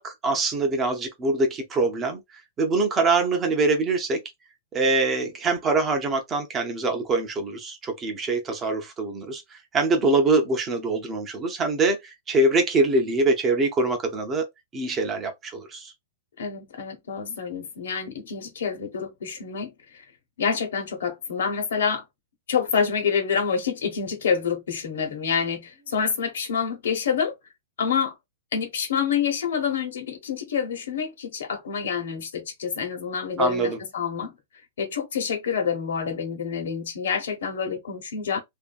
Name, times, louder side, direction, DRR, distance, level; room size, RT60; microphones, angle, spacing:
voice 1, 0.0-2.2 2.6-4.2 4.7-14.5 14.7-15.9 33.4-33.8, right 3 dB, 15° right, 0.5 m, -24 dB
voice 2, 16.4-20.0 20.4-22.0 22.5-27.3 27.8-28.1 28.5-34.3 34.8-38.4, left 6 dB, 90° left, 1.0 m, -27 dB
2.6 x 2.5 x 2.3 m
supercardioid pair, 170°, 0 cm